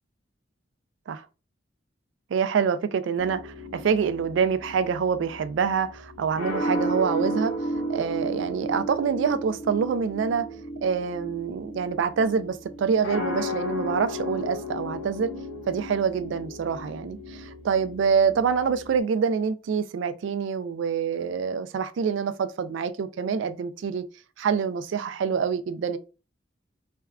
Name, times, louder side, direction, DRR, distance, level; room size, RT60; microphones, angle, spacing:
voice 1, 2.3-7.5 7.9-10.5 10.8-15.3 15.7-24.0 24.4-26.0, right 6 dB, 65° right, 0.3 m, -26 dB
sound 1, 3.2-19.0, equal, 70° left, 1.3 m, -34 dB
3.4 x 2.2 x 2.3 m
head